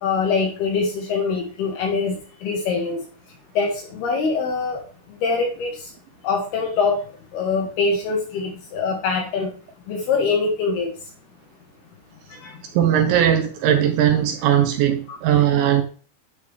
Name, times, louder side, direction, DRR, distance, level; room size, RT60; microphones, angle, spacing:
voice 1, 0.0-2.2 2.4-3.0 3.5-4.8 5.2-5.7 6.2-7.0 7.3-9.5 9.9-10.9 12.4-12.5, left 4 dB, 65° left, 2.9 m, -23 dB
voice 2, 12.7-15.8, right 10 dB, 75° right, 2.8 m, -18 dB
8.6 x 8.5 x 3.5 m
omnidirectional pair, 5.9 m